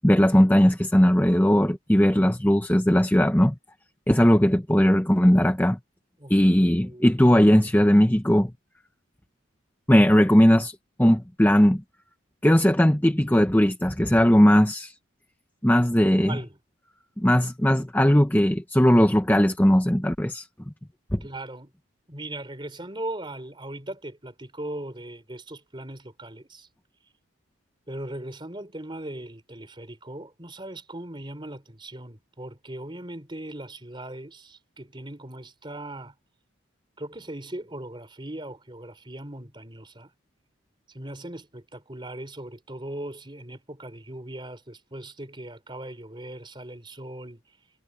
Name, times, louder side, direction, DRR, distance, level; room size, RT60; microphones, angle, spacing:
voice 1, 0.0-3.5 4.1-5.8 6.3-8.5 9.9-11.8 12.4-14.9 15.6-16.4 17.2-20.5 21.1-21.2, equal, 10° left, 0.8 m, -19 dB
voice 2, 6.2-7.0 16.1-16.6 21.2-21.7 22.1-26.7 27.9-36.1 37.0-40.1 40.9-47.4, right 1 dB, 25° right, 3.6 m, -39 dB
head